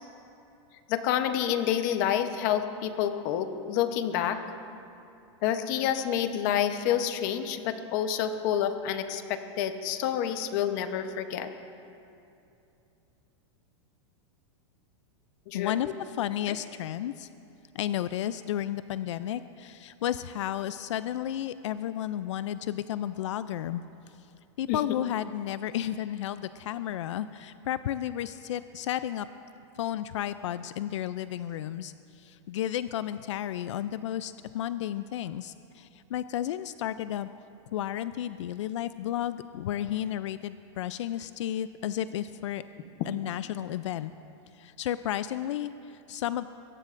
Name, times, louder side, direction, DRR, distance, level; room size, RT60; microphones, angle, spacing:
voice 1, 0.9-4.4 5.4-11.5 15.5-15.7 24.7-24.8, left 10 dB, 40° left, 8 dB, 0.8 m, -28 dB
voice 2, 15.5-17.3 17.7-23.8 24.6-29.3 29.7-37.3 37.7-42.6 43.1-44.1 44.5-46.5, left 11 dB, 85° left, 13 dB, 0.4 m, -32 dB
22.0 x 17.0 x 2.5 m, 2.7 s
supercardioid pair, 165°, 15 cm